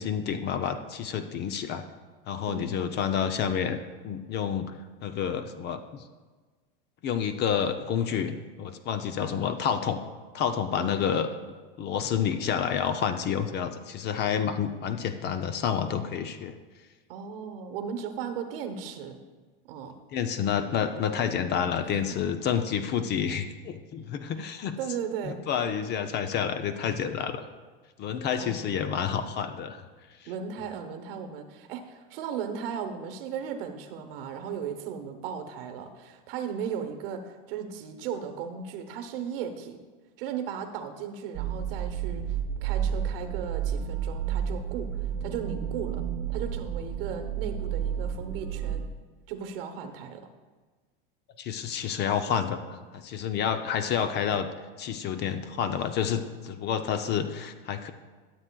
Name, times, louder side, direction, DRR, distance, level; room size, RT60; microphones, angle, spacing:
voice 1, 0.0-1.8 2.3-3.8 4.0-4.7 5.0-6.0 7.0-10.0 10.3-11.3 11.8-16.5 20.1-24.8 25.2-27.4 28.0-29.8 30.2-30.3 51.4-54.5 54.8-57.9, left 8 dB, 35° left, 9 dB, 0.5 m, -29 dB
voice 2, 2.5-3.0 10.8-11.2 17.1-19.2 19.7-19.9 20.4-20.5 21.6-21.7 22.1-22.2 24.4-25.4 28.4-28.8 30.3-39.8 40.2-46.0 46.3-48.9 49.3-50.3, right 7 dB, 70° right, 7 dB, 0.9 m, -36 dB
sound 1, 41.3-48.9, right 8 dB, 50° right, 0.5 m, -31 dB
12.5 x 7.7 x 2.3 m, 1.3 s
supercardioid pair, 115°, 29 cm